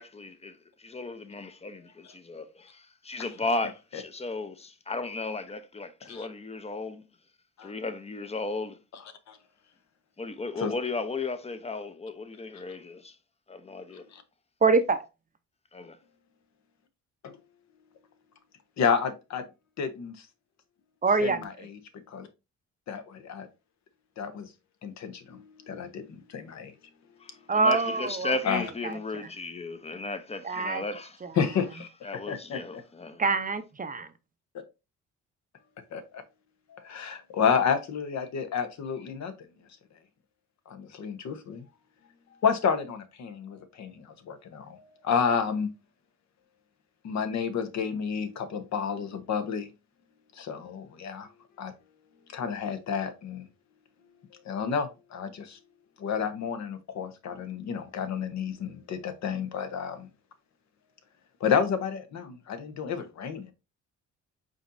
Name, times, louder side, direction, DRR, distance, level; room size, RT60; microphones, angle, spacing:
voice 1, 0.0-7.0 7.6-8.8 10.2-13.2 13.5-14.0 15.7-16.0 27.2-31.2 32.0-33.2, left 3 dB, 20° left, 0.6 m, -35 dB
voice 2, 14.6-15.0 21.0-21.5 27.5-28.9 30.4-30.8 33.2-34.1, right 4 dB, 30° right, 0.6 m, -25 dB
voice 3, 18.8-19.4 19.8-20.3 21.2-21.8 22.1-22.3 22.9-23.5 24.2-24.5 24.8-26.7 28.4-28.6 31.4-31.9 32.3-32.8 35.9-36.2 36.7-39.3 40.7-41.6 42.4-45.7 47.0-49.7 50.3-51.3 51.6-51.7 52.3-53.4 54.4-55.6 56.0-60.1 61.4-63.5, left 6 dB, 65° left, 0.9 m, -30 dB
5.1 x 4.1 x 2.5 m
cardioid pair, 90°, 30 cm